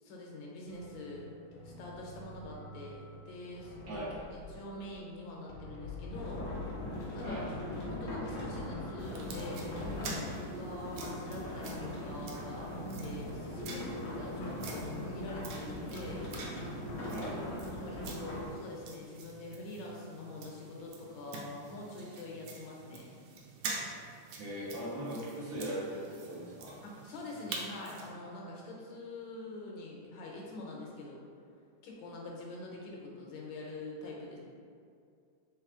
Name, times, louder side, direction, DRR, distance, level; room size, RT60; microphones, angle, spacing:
voice 1, 0.0-1.3 1.6-6.8 7.1-7.4 7.9-12.7 13.0-16.5 16.9-17.3 17.8-23.1 26.8-31.2 31.8-34.4, left 2 dB, 75° left, -2 dB, 1.5 m, -45 dB
sound 1, 0.7-10.1, left 3 dB, 90° left, 1.5 m, -47 dB
sound 2, 6.1-18.5, left 1 dB, 55° left, 1.1 m, -40 dB
sound 3, 9.0-28.1, right 4 dB, 90° right, 1.5 m, -47 dB
voice 2, 24.4-26.8, right 1 dB, 50° right, -8 dB, 1.3 m, -39 dB
3.6 x 3.2 x 3.6 m, 2.4 s
omnidirectional pair, 2.3 m